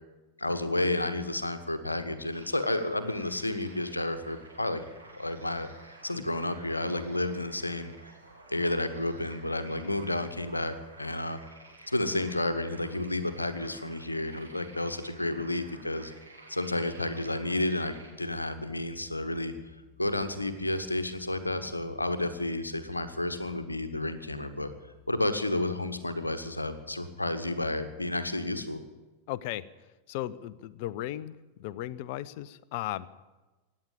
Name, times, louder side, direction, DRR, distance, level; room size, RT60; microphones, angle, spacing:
voice 1, 0.4-4.8 5.1-5.7 6.0-7.9 8.5-11.4 11.9-16.1 16.5-19.5 20.0-24.7 25.1-28.8, left 1 dB, 85° left, 10 dB, 1.2 m, -31 dB
sound 1, 2.3-18.1, right 2 dB, 85° right, 2.8 m, -52 dB
sound 2, 18.3-25.1, left 11 dB, 50° right, 5.0 m, -59 dB
voice 2, 29.3-29.6 30.1-31.3 31.6-33.1, left 14 dB, 50° left, 18 dB, 0.6 m, -35 dB
16.5 x 9.9 x 9.0 m, 1.2 s
figure-of-eight pair, 90°, 0 cm